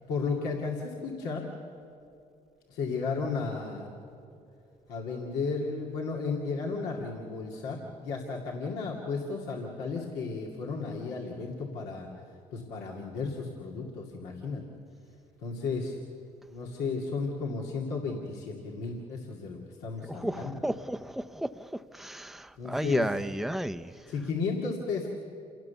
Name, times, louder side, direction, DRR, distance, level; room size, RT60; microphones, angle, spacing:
voice 1, 0.1-1.5 2.7-3.9 4.9-12.1 12.5-14.6 15.4-16.0 16.5-20.6 22.6-23.1 24.1-25.1, left 4 dB, 90° left, -2 dB, 2.5 m, -34 dB
voice 2, 20.2-21.5 22.0-23.9, right 1 dB, ahead, 11 dB, 0.7 m, -32 dB
28.0 x 18.0 x 7.0 m, 2.6 s
supercardioid pair, 60°, 17 cm